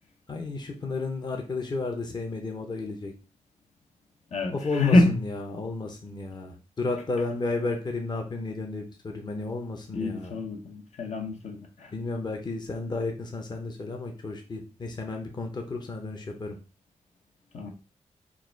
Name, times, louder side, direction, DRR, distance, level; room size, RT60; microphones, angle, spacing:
voice 1, 0.3-3.1 4.5-10.4 11.9-16.6, left 3 dB, 35° left, 0.8 m, -33 dB
voice 2, 4.3-5.2 9.9-11.9 17.5-17.7, left 2 dB, 65° left, 0.9 m, -25 dB
4.8 x 2.4 x 4.5 m
wide cardioid pair, 115°, 12 cm